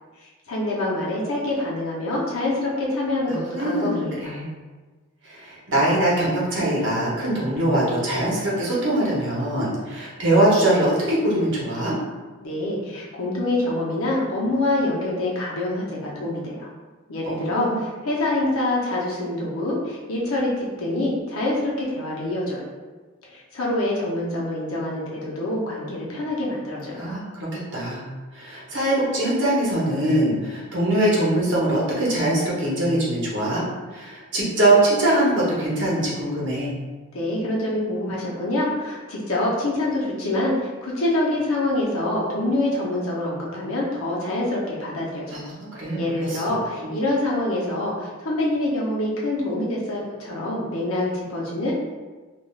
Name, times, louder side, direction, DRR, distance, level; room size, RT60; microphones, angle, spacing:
voice 1, 0.2-4.3 12.4-16.7 17.1-22.6 23.3-27.1 37.1-45.5 45.9-51.7, left 1 dB, 80° left, -4 dB, 0.7 m, -26 dB
voice 2, 3.3-4.5 5.2-11.9 17.3-17.8 26.9-28.0 28.3-33.6 33.9-36.7 45.3-46.4 46.8-46.9, right 1 dB, 55° right, -6 dB, 0.8 m, -22 dB
3.2 x 2.4 x 2.3 m, 1.3 s
head